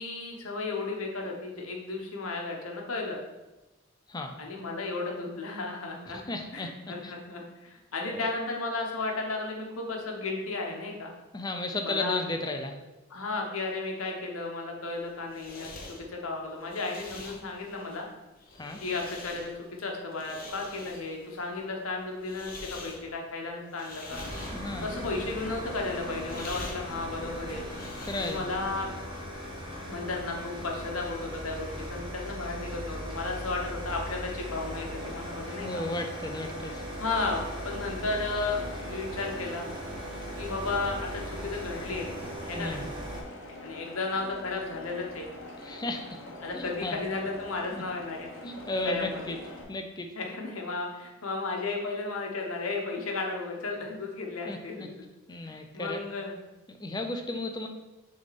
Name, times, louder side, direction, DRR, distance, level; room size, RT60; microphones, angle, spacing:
voice 1, 0.0-3.2 4.4-6.2 6.5-11.1 11.8-12.2 13.1-18.1 18.8-24.2 24.8-27.6 28.1-28.9 29.9-35.8 37.0-39.7 40.4-42.1 42.5-42.8 43.6-45.3 46.4-48.3 48.8-49.2 50.1-55.1 55.4-56.3, left 3 dB, 85° left, 1 dB, 1.1 m, -34 dB
voice 2, 6.3-6.7 7.0-7.1 8.1-8.3 11.3-12.8 18.5-18.8 24.5-24.9 28.0-28.5 35.6-36.8 42.6-42.9 45.6-46.2 46.5-47.0 47.7-47.8 48.4-49.4 49.7-50.1 54.5-54.6 55.3-56.0 56.7-57.7, left 2 dB, 20° left, 4 dB, 0.5 m, -34 dB
sound 1, 14.9-28.7, left 2 dB, 40° left, 0.9 m, -46 dB
sound 2, 24.1-43.2, equal, 25° right, 1.0 m, -39 dB
sound 3, 34.4-49.6, left 1 dB, 65° left, 1.1 m, -45 dB
6.3 x 3.5 x 4.2 m, 1.1 s
head